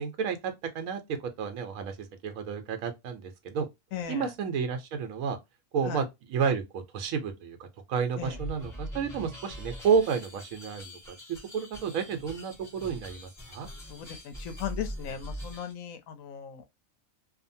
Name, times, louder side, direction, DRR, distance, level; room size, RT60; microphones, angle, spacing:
voice 1, 0.0-3.7 4.1-5.4 5.7-11.0 11.3-13.7, right 6 dB, 80° right, 1.1 m, -31 dB
voice 2, 3.9-4.3 5.8-6.0 8.2-8.4 13.9-16.6, left 9 dB, 80° left, 1.0 m, -37 dB
sound 1, 8.2-15.7, equal, ahead, 1.0 m, -42 dB
2.7 x 2.3 x 2.6 m
omnidirectional pair, 1.4 m